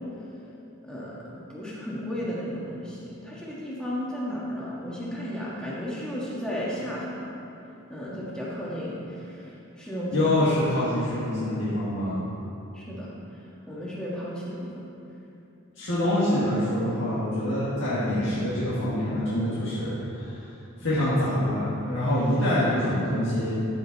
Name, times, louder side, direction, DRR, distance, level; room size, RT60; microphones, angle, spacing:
voice 1, 0.8-7.2 7.9-9.0 9.8-10.3 12.7-13.1 13.7-14.7, equal, 5° left, -7 dB, 1.5 m, -33 dB
voice 2, 10.1-12.3 15.8-20.4 20.8-23.6, left 1 dB, 60° left, -11 dB, 1.8 m, -25 dB
13.0 x 5.0 x 4.1 m, 2.8 s
head